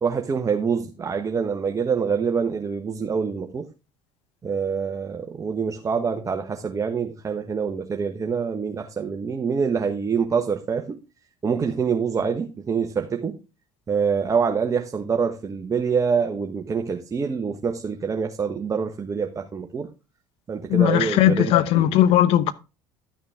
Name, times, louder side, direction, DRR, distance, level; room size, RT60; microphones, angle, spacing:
voice 1, 0.0-3.7 4.4-11.0 11.4-13.4 13.9-19.9 20.5-21.9, right 6 dB, 30° right, 1.3 m, -25 dB
voice 2, 20.7-22.5, left 12 dB, 65° left, 0.9 m, -18 dB
12.5 x 6.4 x 3.6 m
hypercardioid pair, 65°, 10 cm